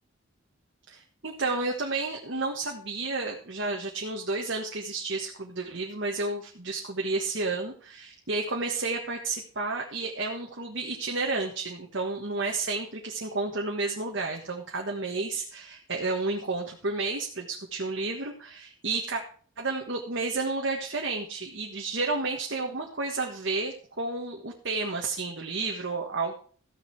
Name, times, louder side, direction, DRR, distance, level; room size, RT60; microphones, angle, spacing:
voice 1, 0.9-19.2 19.6-26.3, right 3 dB, 60° right, 0 dB, 1.6 m, -31 dB
14.5 x 7.4 x 4.7 m, 0.43 s
head